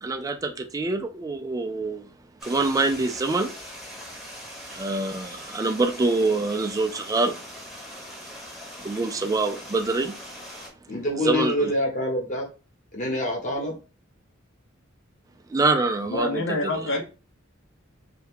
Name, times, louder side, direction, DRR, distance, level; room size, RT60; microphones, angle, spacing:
voice 1, 0.0-2.1 2.4-3.5 4.7-7.4 8.8-10.1 11.2-11.7 15.5-16.9, right 3 dB, 15° right, 0.3 m, -25 dB
Stream, 2.4-10.7, equal, ahead, 0.8 m, -41 dB
voice 2, 10.9-12.4 12.9-13.8, left 1 dB, 40° left, 1.0 m, -26 dB
voice 3, 16.1-17.0, left 2 dB, 65° left, 0.7 m, -26 dB
2.7 x 2.3 x 3.5 m
head